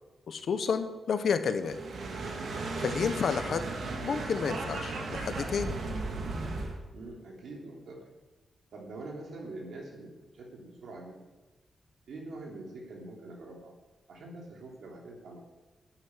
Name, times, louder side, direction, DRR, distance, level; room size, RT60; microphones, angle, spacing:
voice 1, 0.3-1.8 2.8-3.6 4.0-5.8, left 6 dB, 60° left, 9 dB, 1.2 m, -30 dB
sound 1, 1.6-6.8, right 3 dB, 65° right, 2.3 m, -36 dB
voice 2, 6.9-8.1 8.7-11.2 12.1-13.7 14.1-15.4, right 2 dB, 80° right, -1 dB, 3.2 m, -44 dB
11.0 x 8.9 x 9.8 m, 1.1 s
wide cardioid pair, 150°, 0 cm